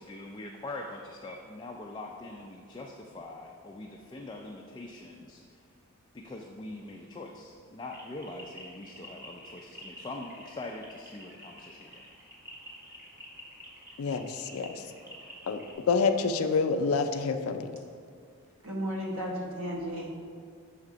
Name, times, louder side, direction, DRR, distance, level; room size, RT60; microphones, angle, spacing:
voice 1, 0.0-5.6 6.1-12.0, left 2 dB, 20° left, 1 dB, 0.3 m, -43 dB
sound 1, 7.8-15.7, equal, 10° right, 0.9 m, -49 dB
voice 2, 14.0-14.8 15.5-15.6 15.9-17.7, left 4 dB, 90° left, 8 dB, 0.4 m, -27 dB
voice 3, 18.6-20.1, equal, 85° right, -2 dB, 1.2 m, -34 dB
6.6 x 3.5 x 4.9 m, 2.1 s
head